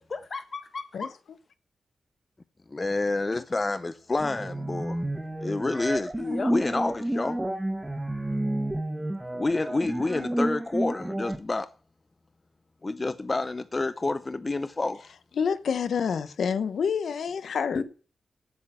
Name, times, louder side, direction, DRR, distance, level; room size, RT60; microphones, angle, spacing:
voice 1, 0.0-1.1 6.2-6.5 17.7-17.8, left 4 dB, 45° left, 1.4 m, -34 dB
voice 2, 0.9-1.4 15.4-17.8, left 6 dB, 90° left, 0.8 m, -28 dB
voice 3, 2.7-5.0 5.4-6.1 6.5-7.4 9.4-11.7 12.8-15.1, left 2 dB, 25° left, 0.6 m, -28 dB
sound 1, 4.2-11.4, right 1 dB, 10° right, 1.3 m, -30 dB
8.5 x 7.8 x 7.6 m
wide cardioid pair, 115°, 0 cm